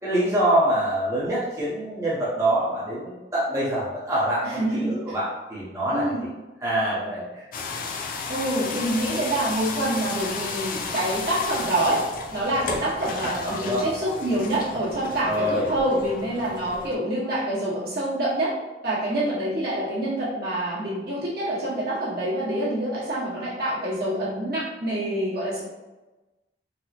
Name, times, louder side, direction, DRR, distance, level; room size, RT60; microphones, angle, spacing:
voice 1, 0.0-6.3 6.6-7.5 13.2-13.8 15.2-15.7, right 1 dB, 15° right, -8 dB, 0.6 m, -25 dB
voice 2, 4.4-5.1 5.9-6.2 8.3-12.0 12.3-18.5 18.8-25.6, right 1 dB, 60° right, -8 dB, 1.3 m, -26 dB
sound 1, 7.5-17.0, left 4 dB, 50° left, 0.3 m, -34 dB
3.9 x 2.1 x 2.8 m, 1.1 s
head